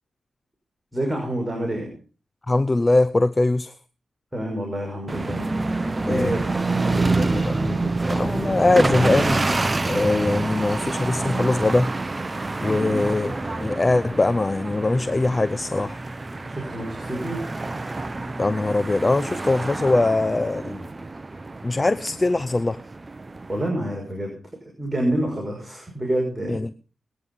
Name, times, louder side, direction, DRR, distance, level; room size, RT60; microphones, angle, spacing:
voice 1, 0.9-1.9 4.3-5.5 6.0-7.9 12.6-13.0 16.4-17.5 23.5-24.3 24.8-26.6, right 1 dB, 15° right, 0 dB, 5.8 m, -28 dB
voice 2, 2.5-3.8 6.1-6.4 7.5-7.6 8.1-9.4 9.8-11.9 12.6-16.0 18.4-20.8 21.6-22.8 26.5-26.7, left 2 dB, 30° left, 16 dB, 0.7 m, -22 dB
sound 1, 5.1-23.7, right 3 dB, 30° right, 0.9 m, -27 dB
20.0 x 9.8 x 5.6 m, 0.38 s
cardioid pair, 55°, 0 cm